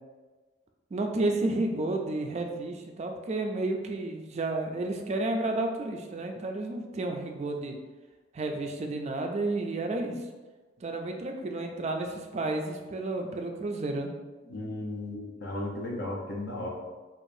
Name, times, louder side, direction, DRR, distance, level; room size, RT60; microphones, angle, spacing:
voice 1, 0.9-7.8 8.3-10.3 10.8-14.1, right 2 dB, 35° right, 3 dB, 0.4 m, -31 dB
voice 2, 14.5-16.7, left 1 dB, 60° left, -1 dB, 0.8 m, -35 dB
4.8 x 2.5 x 2.6 m, 1.3 s
head